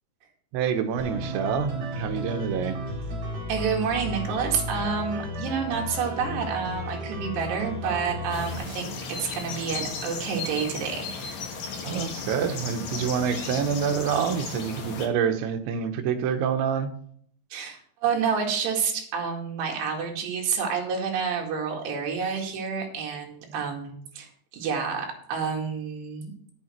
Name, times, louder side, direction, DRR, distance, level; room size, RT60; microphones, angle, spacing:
voice 1, 0.5-2.8 11.8-16.9, right 7 dB, 85° right, 7 dB, 3.3 m, -27 dB
sound 1, 1.0-8.6, left 1 dB, 45° right, 2.9 m, -33 dB
voice 2, 3.5-8.9 9.2-11.4 17.5-26.3, right 6 dB, 70° right, 1 dB, 4.1 m, -29 dB
sound 2, 8.3-15.1, left 5 dB, 55° left, 2.2 m, -35 dB
10.5 x 8.5 x 4.5 m, 0.62 s
omnidirectional pair, 5.2 m